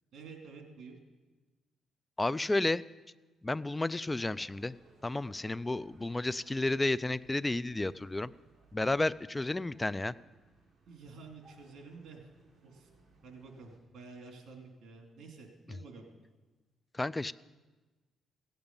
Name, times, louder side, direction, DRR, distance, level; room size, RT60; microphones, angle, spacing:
voice 1, 0.1-1.0 10.9-12.3 12.6-12.9 13.2-16.1, right 4 dB, 65° right, 2 dB, 2.6 m, -50 dB
voice 2, 2.2-2.8 3.4-4.8 5.0-8.3 8.7-10.1 16.9-17.3, left 2 dB, 15° left, 18 dB, 0.3 m, -32 dB
sound 1, 4.1-13.8, right 3 dB, 30° right, 4.1 m, -64 dB
16.0 x 8.8 x 5.3 m, 1.2 s
cardioid pair, 90°, 0 cm